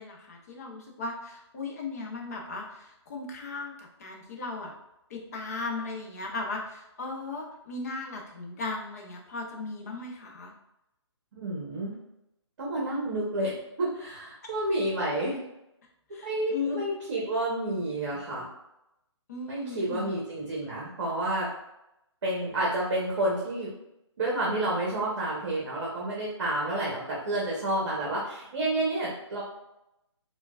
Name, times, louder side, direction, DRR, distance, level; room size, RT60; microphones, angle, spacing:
voice 1, 0.0-4.7 5.1-10.5 16.1-16.9 19.3-20.1, left 3 dB, 35° left, 0 dB, 0.6 m, -37 dB
voice 2, 11.3-11.9 12.6-13.5 13.8-15.4 16.2-18.4 19.5-21.5 22.2-23.7 24.2-29.4, right 1 dB, 45° right, -4 dB, 0.9 m, -30 dB
4.3 x 2.3 x 2.3 m, 0.87 s
hypercardioid pair, 165°, 15 cm